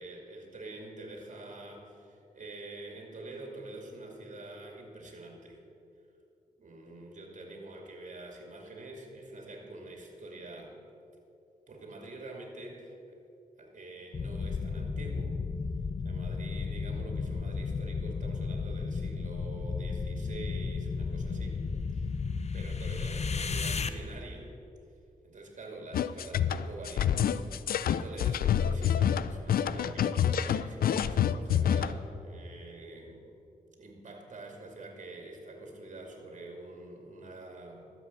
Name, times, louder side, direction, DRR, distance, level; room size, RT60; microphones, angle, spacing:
voice 1, 0.0-5.6 6.6-10.8 11.7-13.2 13.6-15.4 16.0-21.6 21.9-22.1 22.5-24.5 25.2-27.5 27.8-33.2 33.8-37.8, right 2 dB, 55° right, 1 dB, 2.4 m, -46 dB
sound 1, 14.1-23.9, left 4 dB, 45° left, 0.7 m, -34 dB
sound 2, 25.9-31.9, left 9 dB, 85° left, 0.4 m, -27 dB
13.0 x 7.7 x 7.0 m, 2.7 s
cardioid pair, 75°, 15 cm